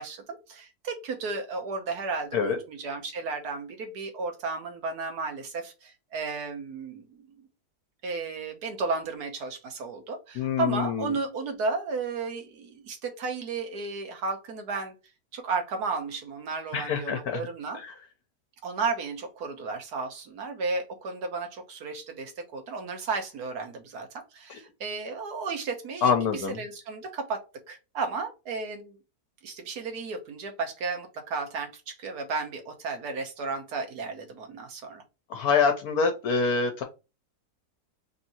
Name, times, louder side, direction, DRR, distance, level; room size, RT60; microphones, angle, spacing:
voice 1, 0.0-7.3 8.0-14.9 15.3-17.8 18.6-29.0 29.4-35.0, right 4 dB, 80° right, 5 dB, 1.5 m, -33 dB
voice 2, 10.3-11.2 16.7-17.5 17.7-17.9 24.5-24.6 26.0-26.6 35.3-36.8, left 5 dB, 70° left, 5 dB, 1.2 m, -26 dB
3.6 x 2.7 x 4.2 m, 0.28 s
omnidirectional pair, 1.7 m